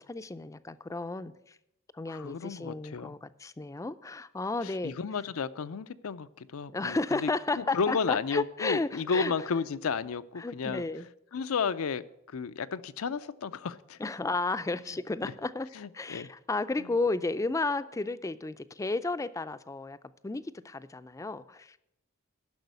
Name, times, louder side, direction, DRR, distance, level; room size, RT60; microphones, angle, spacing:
voice 1, 0.0-1.6 1.9-4.9 6.7-9.3 10.4-11.1 14.0-15.7 15.9-20.0 20.2-21.8, left 3 dB, 15° left, 14 dB, 0.4 m, -33 dB
voice 2, 2.1-3.1 4.6-7.3 7.6-10.8 11.3-12.0 12.3-14.0 15.2-15.3 15.7-16.3 16.8-16.9, left 5 dB, 80° left, 14 dB, 0.5 m, -33 dB
10.5 x 6.2 x 8.0 m, 0.81 s
head